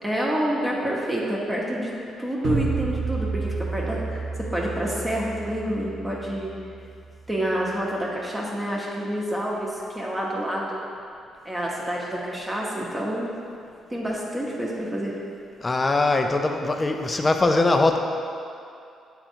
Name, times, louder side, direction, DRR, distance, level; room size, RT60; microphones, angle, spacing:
voice 1, 0.0-6.5 7.3-10.8 11.4-13.3 13.9-15.1, equal, 15° right, -4 dB, 1.0 m, -28 dB
sound 1, 2.4-7.5, right 4 dB, 80° right, 0.9 m, -31 dB
voice 2, 15.6-18.0, left 2 dB, 25° left, 5 dB, 0.5 m, -21 dB
7.9 x 3.7 x 4.5 m, 2.5 s
cardioid pair, 90°, 0 cm